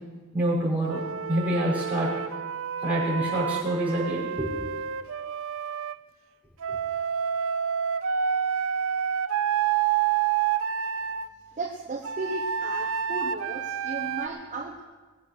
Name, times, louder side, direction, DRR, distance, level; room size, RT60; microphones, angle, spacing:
voice 1, 0.3-2.1 2.8-4.5, right 1 dB, 5° right, -8 dB, 5.9 m, -27 dB
Wind instrument woodwind instrument, 0.9-6.0 6.6-11.3 12.0-14.3, right 8 dB, 65° right, 0.6 m, -28 dB
voice 2, 11.6-14.8, right 3 dB, 35° right, 1 dB, 0.9 m, -35 dB
21.0 x 7.8 x 6.6 m, 1.4 s
head